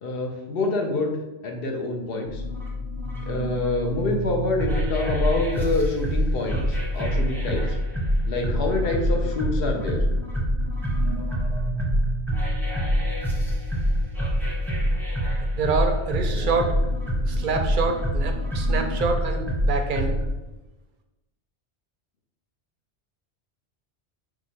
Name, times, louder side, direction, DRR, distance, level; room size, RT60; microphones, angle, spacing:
voice 1, 0.0-2.4 3.3-7.6 8.3-10.0, left 2 dB, 60° left, 2 dB, 0.9 m, -27 dB
sound 1, 2.3-20.3, equal, ahead, 0.7 m, -25 dB
voice 2, 15.5-16.7 17.2-20.1, right 4 dB, 60° right, 4 dB, 0.6 m, -26 dB
4.7 x 2.3 x 4.2 m, 1.1 s
omnidirectional pair, 1.1 m